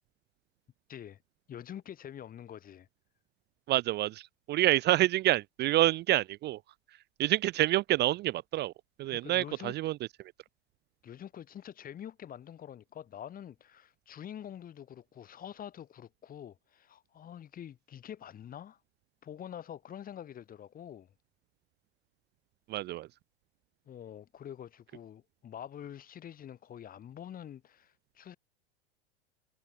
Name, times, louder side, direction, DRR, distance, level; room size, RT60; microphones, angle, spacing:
voice 1, 1.5-2.9 9.1-9.7 11.0-18.8 19.2-21.1 23.9-28.4, left 10 dB, 25° left, 1.2 m, -46 dB
voice 2, 3.7-6.6 7.2-8.7 9.0-10.0 22.7-23.1, right 15 dB, 30° right, 0.6 m, -27 dB
hypercardioid pair, 90°, 34 cm